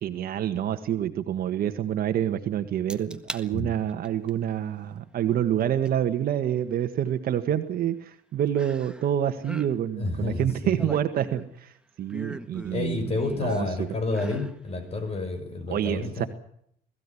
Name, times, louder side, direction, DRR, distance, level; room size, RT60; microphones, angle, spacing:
voice 1, 0.0-11.7 12.0-13.9 15.7-16.2, right 10 dB, 60° right, 8 dB, 1.6 m, -27 dB
sound 1, 2.9-3.5 3.9-4.3 5.9-6.0 8.6-9.1 9.4-9.7 10.5-11.6 12.1-13.6 14.1-14.6 15.0-15.1, right 1 dB, 5° right, 1.6 m, -39 dB
voice 2, 10.0-10.9 12.7-16.3, left 2 dB, 35° left, 9 dB, 6.2 m, -30 dB
21.5 x 15.5 x 9.9 m, 0.71 s
cardioid pair, 110°, 17 cm